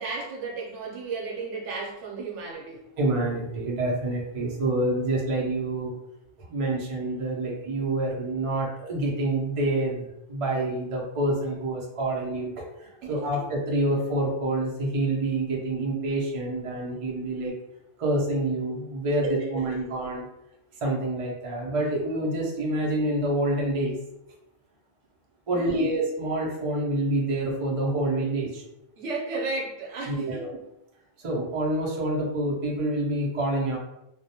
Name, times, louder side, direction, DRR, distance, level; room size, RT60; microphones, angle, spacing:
voice 1, 0.0-2.8 13.0-13.4 19.2-19.8 25.5-25.9 29.0-30.6, right 3 dB, 70° right, -2 dB, 0.9 m, -34 dB
voice 2, 3.0-5.9 6.5-12.6 13.1-17.5 18.0-20.2 20.8-23.9 25.5-28.6 30.1-30.5 31.2-33.8, right 1 dB, 45° right, -3 dB, 0.4 m, -27 dB
2.3 x 2.1 x 2.7 m, 0.86 s
omnidirectional pair, 1.3 m